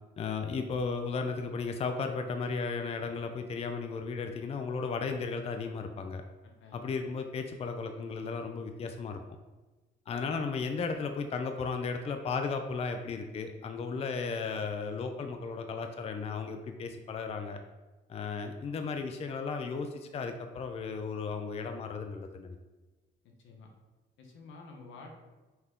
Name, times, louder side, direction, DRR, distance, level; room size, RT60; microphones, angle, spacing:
voice 1, 0.2-6.2 6.7-9.2 10.1-17.6 18.1-22.6, left 4 dB, 30° left, 5 dB, 0.4 m, -35 dB
voice 2, 6.4-6.9 23.4-23.7 24.2-25.1, left 3 dB, 80° left, 1 dB, 0.8 m, -50 dB
5.5 x 2.2 x 3.6 m, 1.2 s
cardioid pair, 90°, 20 cm